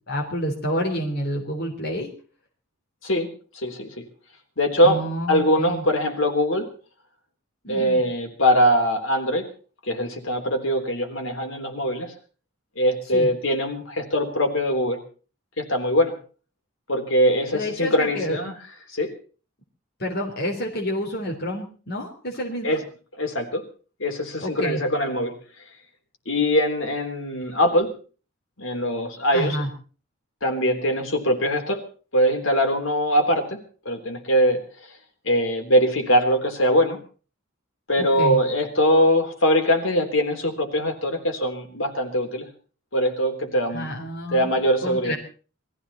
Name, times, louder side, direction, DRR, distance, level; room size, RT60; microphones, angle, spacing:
voice 1, 0.1-2.1 4.8-5.8 7.6-8.0 13.1-13.3 17.5-18.4 20.0-22.8 24.4-24.8 29.3-29.7 38.0-38.4 43.7-44.6 44.8-45.2, equal, 50° left, 0 dB, 3.5 m, -29 dB
voice 2, 3.5-4.1 4.6-5.0 5.3-6.7 7.7-9.5 9.9-12.1 12.8-15.0 15.6-16.1 16.9-18.5 18.9-19.1 22.6-22.8 23.2-23.6 24.0-25.4 26.3-27.9 28.6-29.6 30.4-31.8 32.1-33.6 33.9-34.6 35.2-37.0 37.9-42.5 42.9-44.0 44.3-45.2, equal, 75° left, 4 dB, 3.6 m, -22 dB
21.5 x 15.0 x 4.3 m, 0.39 s
head